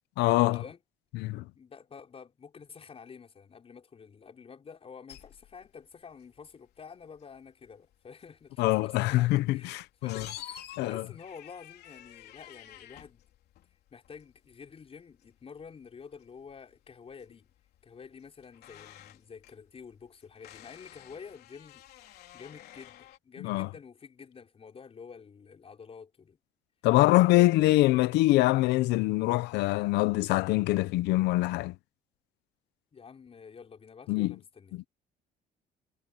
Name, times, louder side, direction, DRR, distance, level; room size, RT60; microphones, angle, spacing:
voice 1, 0.2-0.6 1.1-1.4 8.6-10.3 10.8-11.0 23.4-23.7 26.8-31.7 34.1-34.3, left 18 dB, 90° left, 0.8 m, -24 dB
voice 2, 1.6-13.2 13.9-17.5 17.8-21.8 22.3-26.4 27.1-27.7 32.9-34.8, left 6 dB, 35° left, 5.3 m, -49 dB
sound 1, 5.1-23.2, left 12 dB, 70° left, 3.4 m, -52 dB
cardioid pair, 110°, 17 cm